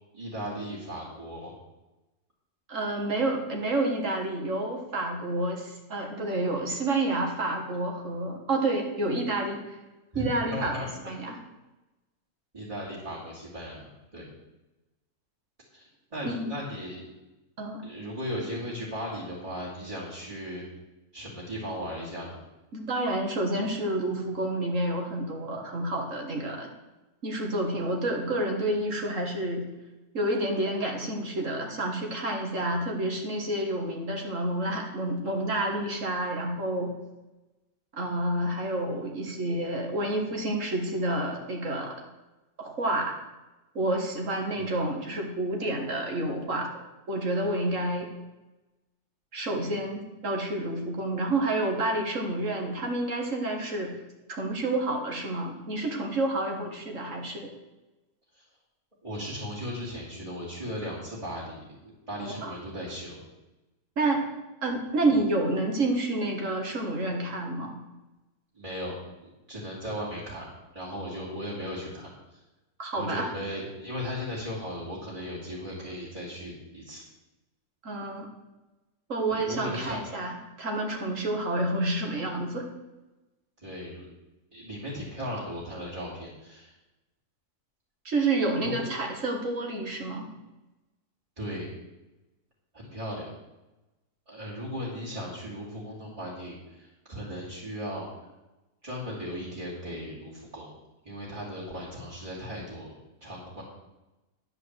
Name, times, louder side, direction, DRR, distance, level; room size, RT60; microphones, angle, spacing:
voice 1, 0.1-1.5 10.1-11.1 12.5-14.3 15.7-17.1 17.8-20.7 21.1-22.4 44.5-44.8 58.3-58.4 59.0-63.2 68.5-70.5 70.7-72.4 72.9-77.0 79.3-80.0 83.6-84.0 84.5-86.7 88.6-88.9 91.4-91.7 92.7-93.3 94.3-98.3 98.8-100.7 101.0-102.9 103.2-103.6, equal, 25° right, -9 dB, 2.8 m, -37 dB
voice 2, 2.7-9.6 10.1-11.4 16.2-16.5 17.6-17.9 22.7-26.7 27.2-29.7 30.1-36.9 37.9-41.9 42.6-43.2 43.8-46.7 47.1-48.1 49.3-53.9 54.3-57.5 62.1-62.5 64.0-64.2 64.6-67.7 72.8-73.3 77.8-78.3 79.1-82.7 88.1-90.3, right 2 dB, 55° right, 1 dB, 2.1 m, -29 dB
10.5 x 5.1 x 8.0 m, 1.0 s
omnidirectional pair, 1.6 m